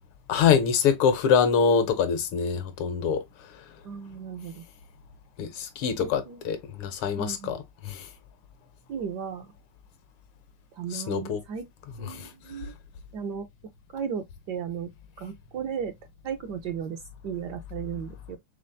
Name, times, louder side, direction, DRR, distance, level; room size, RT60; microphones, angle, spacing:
voice 1, 0.3-3.2 5.4-8.1 10.9-11.4 12.0-12.3, left 7 dB, 80° left, 1.7 m, -25 dB
voice 2, 3.8-4.6 6.0-6.6 7.1-7.5 8.9-9.5 10.7-11.7 12.0-12.7 13.1-13.5 13.9-14.9 15.2-15.9 16.2-18.4, right 7 dB, 75° right, 1.0 m, -35 dB
4.3 x 3.6 x 2.6 m
omnidirectional pair, 2.3 m